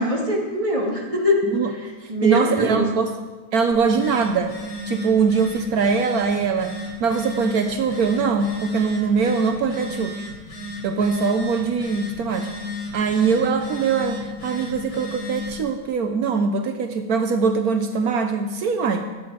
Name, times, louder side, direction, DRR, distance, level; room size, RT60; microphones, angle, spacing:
voice 1, 0.0-1.5 1.7-2.9, left 1 dB, 20° right, -1 dB, 2.6 m, -23 dB
voice 2, 2.0-4.5 4.9-10.2 10.8-12.5 12.9-19.1, right 5 dB, 75° right, 7 dB, 1.3 m, -22 dB
Telephone, 3.7-15.7, left 2 dB, 75° left, 4.3 m, -34 dB
23.5 x 8.8 x 5.1 m, 1.3 s
omnidirectional pair, 1.6 m